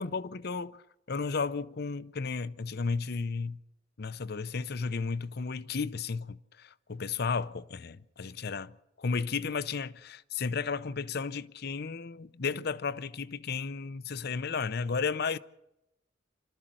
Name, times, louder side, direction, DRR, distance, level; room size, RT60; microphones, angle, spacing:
voice 1, 0.0-3.6 4.0-15.4, left 5 dB, 55° left, 0.7 m, -33 dB
28.5 x 13.0 x 7.6 m
head